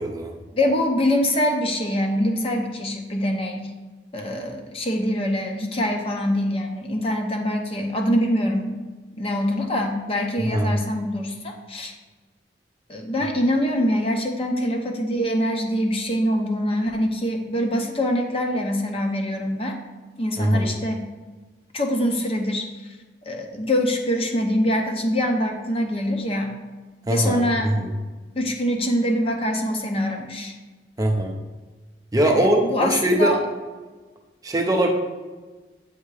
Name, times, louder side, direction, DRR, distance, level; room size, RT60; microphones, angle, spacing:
voice 1, 0.0-0.4 10.4-10.8 20.4-20.7 27.1-27.9 31.0-31.4 32.1-33.4 34.4-34.9, right 1 dB, 20° right, 2 dB, 0.5 m, -21 dB
voice 2, 0.5-3.7 4.1-8.7 9.2-11.9 12.9-19.7 20.2-21.0 21.7-22.7 23.3-26.6 27.1-27.7 28.4-30.5 32.2-33.4, equal, 30° left, 2 dB, 0.7 m, -24 dB
8.0 x 2.8 x 4.8 m, 1.3 s
head